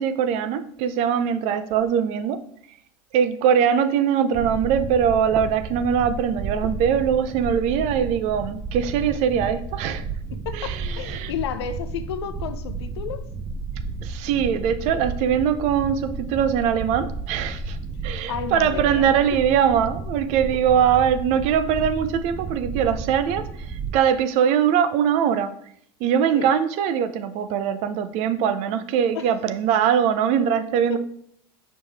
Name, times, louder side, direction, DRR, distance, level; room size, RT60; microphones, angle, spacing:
voice 1, 0.0-2.4 3.1-10.1 10.5-11.3 14.0-17.8 18.0-25.5 26.0-31.0, right 8 dB, 55° right, 12 dB, 0.6 m, -22 dB
sound 1, 4.3-24.0, right 4 dB, 15° right, 0.5 m, -32 dB
voice 2, 10.4-13.2 18.3-19.4 26.3-26.5 29.1-29.3 30.9-31.0, left 8 dB, 85° left, 10 dB, 0.6 m, -32 dB
6.3 x 5.1 x 3.5 m, 0.68 s
hypercardioid pair, 105°, 13 cm